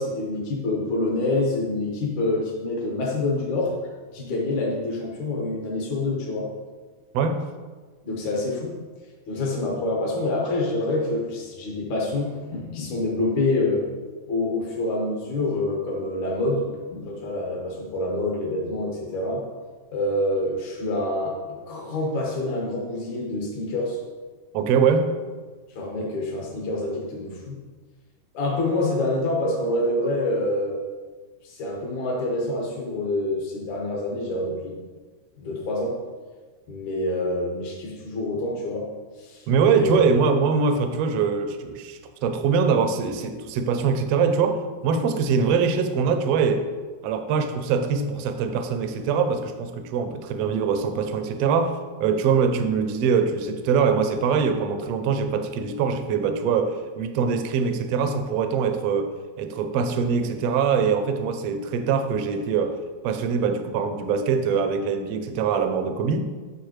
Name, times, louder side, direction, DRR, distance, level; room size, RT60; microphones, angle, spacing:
voice 1, 0.0-3.7 4.1-6.5 8.0-8.8 9.3-13.8 14.3-19.4 19.9-24.0 25.8-27.6 28.3-30.8 31.4-34.8 35.4-36.0 36.7-38.9 39.2-39.5 39.7-40.1, left 2 dB, 70° left, -2 dB, 2.9 m, -26 dB
voice 2, 24.5-25.1 39.5-46.6 47.0-51.7 52.0-62.8 63.0-66.3, right 6 dB, 75° right, 7 dB, 1.5 m, -23 dB
11.0 x 6.8 x 3.2 m, 1.4 s
omnidirectional pair, 3.5 m